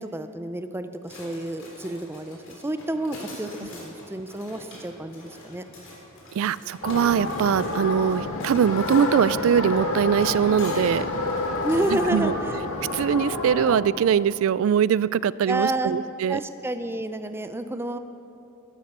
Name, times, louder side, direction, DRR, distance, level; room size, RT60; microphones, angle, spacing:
voice 1, 0.0-5.6 11.6-12.6 15.5-15.9 16.3-18.0, right 1 dB, 10° right, 9 dB, 0.5 m, -30 dB
sound 1, 1.0-12.1, left 1 dB, 60° left, 3.5 m, -44 dB
voice 2, 6.3-11.1 11.9-12.3 12.9-16.4, right 8 dB, 70° right, 19 dB, 0.3 m, -22 dB
sound 2, 6.8-13.8, left 2 dB, 90° left, 1.7 m, -29 dB
13.0 x 12.5 x 6.7 m, 2.8 s
head